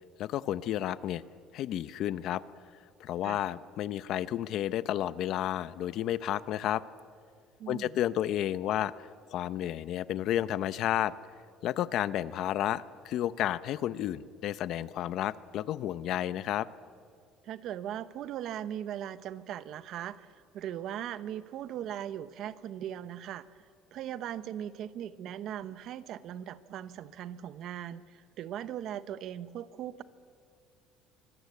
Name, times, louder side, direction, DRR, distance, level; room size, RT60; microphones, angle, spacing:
voice 1, 0.2-1.2 1.5-2.4 3.0-6.8 7.7-8.9 9.3-11.1 11.6-16.7, left 12 dB, 50° left, 16 dB, 0.7 m, -31 dB
voice 2, 7.6-8.0 17.4-23.5 23.9-30.0, right 10 dB, 45° right, 15 dB, 0.8 m, -39 dB
25.0 x 21.0 x 8.4 m, 2.1 s
cardioid pair, 165°, 0 cm